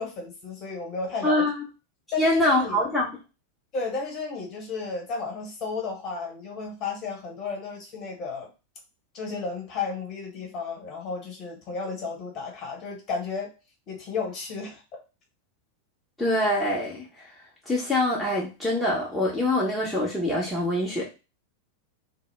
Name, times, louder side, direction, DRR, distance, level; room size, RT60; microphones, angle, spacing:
voice 1, 0.0-1.5 2.1-2.9 3.7-8.5 9.1-13.5 13.9-14.8, left 4 dB, 35° left, 0 dB, 1.0 m, -33 dB
voice 2, 1.2-1.7 2.2-3.1 16.2-17.3 17.7-21.0, left 1 dB, 5° left, -5 dB, 0.7 m, -24 dB
2.0 x 2.0 x 3.2 m, 0.29 s
figure-of-eight pair, 90°, 0 cm